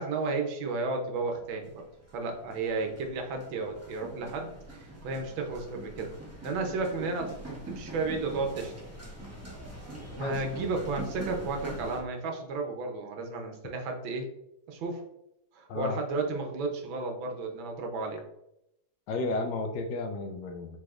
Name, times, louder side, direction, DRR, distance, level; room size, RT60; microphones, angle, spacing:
voice 1, 0.0-1.9 2.1-6.1 6.4-8.7 10.2-14.3 14.7-15.0 15.5-18.2, right 3 dB, 90° right, 3 dB, 1.6 m, -33 dB
sound 1, 0.9-1.2 1.5-12.0, right 1 dB, 15° right, 0.5 m, -44 dB
voice 2, 19.1-20.8, left 2 dB, 75° left, 5 dB, 1.2 m, -32 dB
4.8 x 4.0 x 2.4 m, 0.83 s
omnidirectional pair, 2.1 m